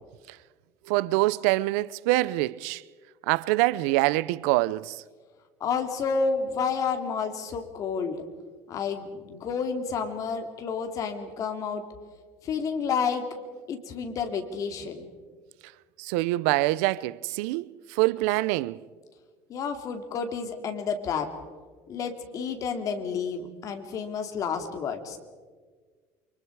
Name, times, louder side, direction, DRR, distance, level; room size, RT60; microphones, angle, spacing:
voice 1, 0.9-2.8 3.3-5.0 16.0-18.8, right 19 dB, 90° right, 0.6 m, -25 dB
voice 2, 5.6-8.3 8.7-11.9 12.4-13.3 13.7-15.1 19.5-21.3 21.9-25.2, left 5 dB, 45° left, 2.8 m, -30 dB
29.0 x 24.5 x 4.8 m
cardioid pair, 130°, 8 cm